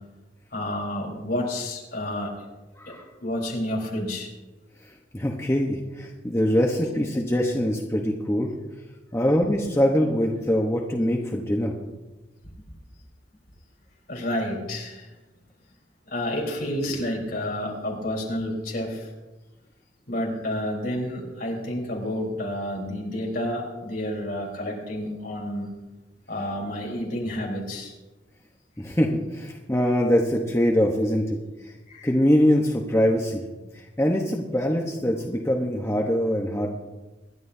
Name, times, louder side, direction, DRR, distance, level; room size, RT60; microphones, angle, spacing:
voice 1, 0.5-2.3 2.9-3.0 3.2-4.3 6.8-6.9 14.1-15.1 16.1-19.1 20.1-25.7 26.3-27.9 31.9-32.1, left 1 dB, 55° left, -1 dB, 4.0 m, -30 dB
voice 2, 4.8-8.5 9.1-11.7 28.8-31.4 31.6-31.7 32.0-33.4 33.7-36.7, equal, 15° left, 0 dB, 1.0 m, -23 dB
25.5 x 11.0 x 2.7 m, 1.1 s
head